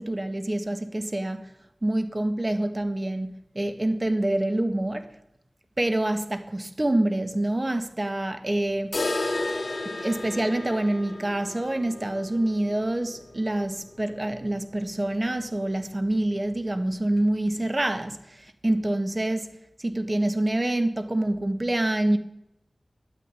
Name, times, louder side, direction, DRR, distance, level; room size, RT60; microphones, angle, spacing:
voice 1, 0.0-1.5 1.8-5.1 5.8-9.0 9.4-19.5 19.8-22.2, right 1 dB, 30° right, 1.6 m, -26 dB
sound 1, 8.9-14.7 15.0-15.1 15.5-15.6 16.1-16.2 17.1-17.2, left 2 dB, 60° left, 1.9 m, -33 dB
11.5 x 9.8 x 9.9 m
wide cardioid pair, 50°, 0 cm